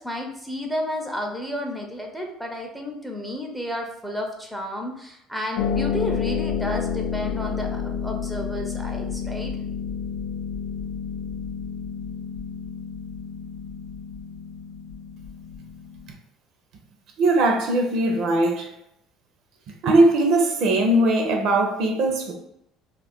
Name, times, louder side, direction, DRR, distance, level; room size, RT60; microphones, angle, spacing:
voice 1, 0.0-9.5, left 1 dB, ahead, 0.5 m, -31 dB
Harp, 5.6-16.1, left 7 dB, 80° left, 0.3 m, -30 dB
voice 2, 17.2-18.7 19.7-22.3, right 2 dB, 65° right, 0.6 m, -20 dB
2.4 x 2.1 x 3.5 m
cardioid pair, 110°, 0 cm